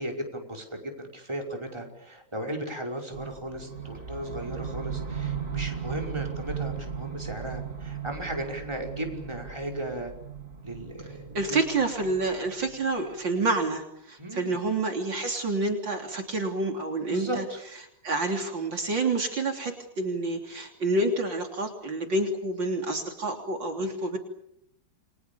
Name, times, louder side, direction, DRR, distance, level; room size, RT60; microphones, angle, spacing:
voice 1, 0.0-10.1 10.6-11.4 14.2-14.6 17.1-17.6, right 1 dB, 15° right, 1 dB, 5.6 m, -36 dB
sound 1, 3.1-13.2, right 7 dB, 40° right, 3.4 m, -37 dB
voice 2, 11.3-17.4 18.0-24.2, right 2 dB, 65° right, 3 dB, 4.0 m, -28 dB
30.0 x 24.0 x 7.1 m, 0.75 s
omnidirectional pair, 2.2 m